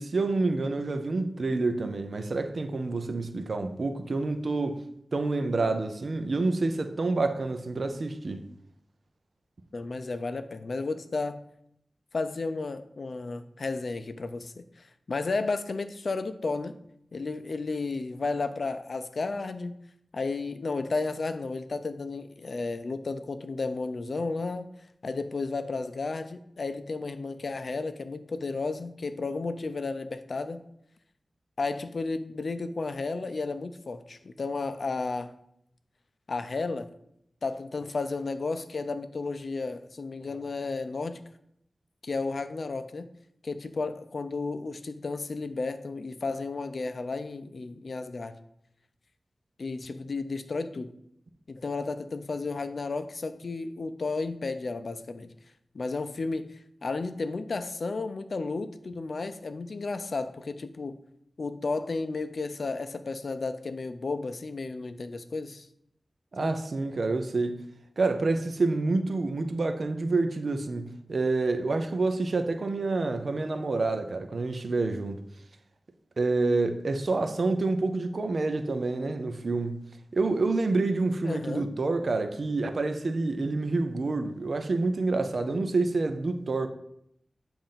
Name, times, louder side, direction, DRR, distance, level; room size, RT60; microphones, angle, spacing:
voice 1, 0.0-4.8 5.1-8.5 66.3-67.6 68.0-75.2 76.2-79.8 80.1-86.7, right 3 dB, 65° right, 0.5 m, -28 dB
voice 2, 9.7-11.4 12.1-16.7 17.1-19.8 20.1-24.7 25.0-30.6 31.6-35.3 36.3-36.9 37.4-41.2 42.0-43.1 43.4-48.4 49.6-51.0 51.5-55.3 55.7-61.0 61.4-65.7 66.4-66.5 81.2-81.7, left 3 dB, 65° left, 0.4 m, -33 dB
7.0 x 2.6 x 5.6 m
wide cardioid pair, 70°, 0 cm